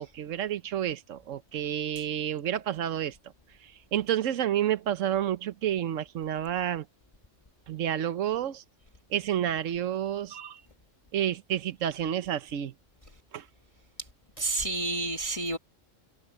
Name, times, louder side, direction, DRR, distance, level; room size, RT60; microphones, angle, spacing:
voice 1, 0.0-3.2 3.6-6.8 7.7-8.6 9.1-10.6 11.1-12.7 13.3-13.4, right 10 dB, 85° right, 1.2 m, -30 dB
voice 2, 14.4-15.6, right 2 dB, 25° left, 1.4 m, -29 dB
omnidirectional pair, 1.3 m